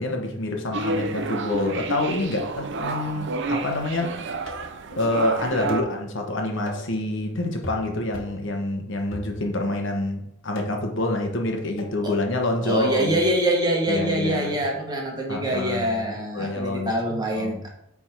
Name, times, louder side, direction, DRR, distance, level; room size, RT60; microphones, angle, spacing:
voice 1, 0.0-4.1 4.9-13.2 13.9-14.5 15.3-16.0 16.3-17.6, left 2 dB, 65° left, 2 dB, 1.1 m, -27 dB
sound 1, 0.7-5.8, right 3 dB, 60° right, 0.6 m, -30 dB
sound 2, 4.5-4.8 5.7-6.0 6.7-7.0 7.6-7.9 8.1-8.4 9.1-9.7 10.5-11.0 11.8-12.0, left 1 dB, 85° left, 1.4 m, -38 dB
voice 2, 12.6-17.7, right 1 dB, 20° right, -1 dB, 1.4 m, -25 dB
8.5 x 3.6 x 4.5 m, 0.81 s
head